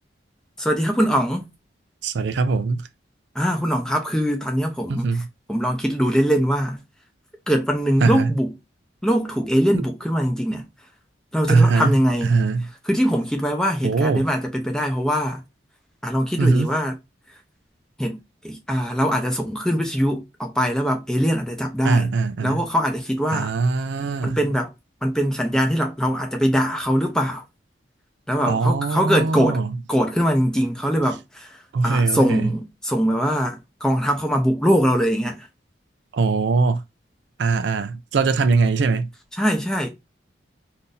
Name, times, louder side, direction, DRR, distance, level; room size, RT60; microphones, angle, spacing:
voice 1, 0.6-1.5 3.4-5.1 5.5-6.8 7.5-8.5 9.0-10.7 11.3-12.3 12.9-15.4 16.0-16.9 18.0-18.2 18.4-22.1 22.4-23.5 24.2-24.7 25.0-27.4 28.3-29.6 29.9-31.5 31.8-35.5 39.3-39.9, equal, 5° left, 0.6 m, -22 dB
voice 2, 2.0-2.8 4.9-5.3 8.0-8.3 9.7-9.8 11.5-11.9 12.2-12.7 13.8-14.3 16.4-16.7 21.8-22.6 23.3-24.4 28.5-29.8 31.7-32.5 36.1-36.8 37.4-39.1, right 4 dB, 70° right, 0.4 m, -21 dB
2.6 x 2.6 x 3.8 m
head